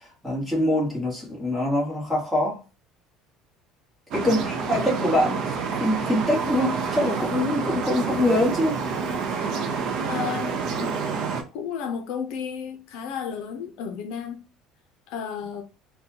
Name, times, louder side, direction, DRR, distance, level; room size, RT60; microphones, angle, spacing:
voice 1, 0.0-2.6 4.1-5.4 5.8-8.8, left 1 dB, 5° right, 1.2 m, -24 dB
sound 1, 4.1-11.4, right 5 dB, 45° right, 0.6 m, -28 dB
voice 2, 4.2-4.6 10.1-10.9 11.2-11.3 11.5-14.4 15.1-15.6, left 7 dB, 65° left, 0.6 m, -33 dB
3.9 x 2.2 x 2.8 m
cardioid pair, 170°, 0 cm